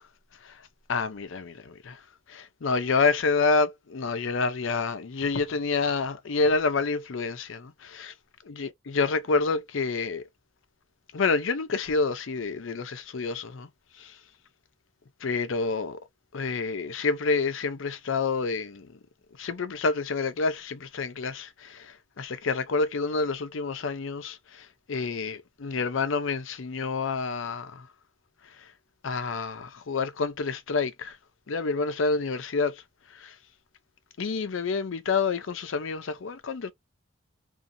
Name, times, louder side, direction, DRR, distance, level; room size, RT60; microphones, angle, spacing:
voice 1, 0.9-2.0 2.3-8.1 8.5-10.2 11.1-13.7 14.0-14.2 15.2-16.0 16.3-18.9 19.4-27.9 29.0-31.2 31.5-32.8 33.1-33.4 34.2-36.7, left 4 dB, 75° left, 0.5 m, -28 dB
2.6 x 2.6 x 2.6 m
head